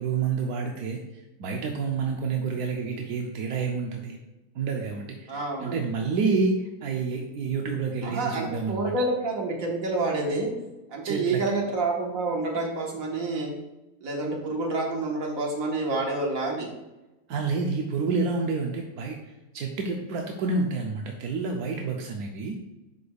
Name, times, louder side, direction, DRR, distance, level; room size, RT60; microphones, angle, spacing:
voice 1, 0.0-4.2 4.5-8.9 11.0-11.4 17.3-19.2 19.5-22.6, right 4 dB, 85° right, 1 dB, 1.2 m, -29 dB
voice 2, 5.3-5.8 8.0-10.5 10.9-13.5 14.0-16.7, right 3 dB, 65° right, 0 dB, 1.7 m, -28 dB
11.0 x 5.1 x 2.3 m, 1.0 s
omnidirectional pair, 1.6 m